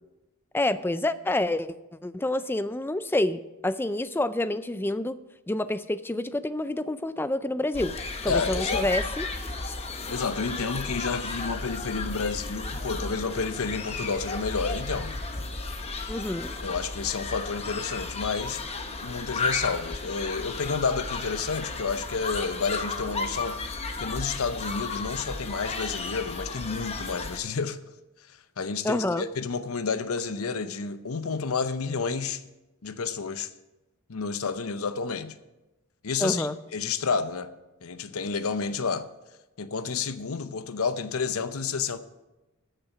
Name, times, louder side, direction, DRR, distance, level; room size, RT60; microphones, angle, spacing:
voice 1, 0.5-1.7 2.0-5.2 5.5-8.0 8.2-9.3 16.1-16.5 28.8-29.2 36.2-36.6, left 1 dB, 10° left, 0.4 m, -28 dB
sound 1, 7.7-27.4, left 3 dB, 30° left, 0.9 m, -33 dB
voice 2, 8.3-8.9 10.1-15.1 16.6-18.6 19.0-23.6 24.0-27.8 28.6-32.4 32.8-33.5 34.1-35.3 36.0-37.5 37.8-39.0 39.6-42.0, left 5 dB, 75° left, 0.7 m, -30 dB
14.0 x 6.8 x 5.9 m
head